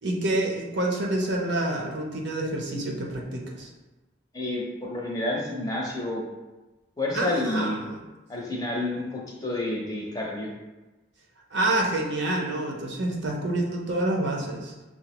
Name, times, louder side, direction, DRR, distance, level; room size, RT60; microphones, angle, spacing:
voice 1, 0.0-3.7 7.1-8.0 11.5-14.7, right 1 dB, 65° right, 0 dB, 0.7 m, -27 dB
voice 2, 4.3-6.2 7.0-7.8 8.3-10.5, left 2 dB, 20° left, -3 dB, 0.6 m, -29 dB
5.8 x 2.0 x 2.9 m, 1.1 s
head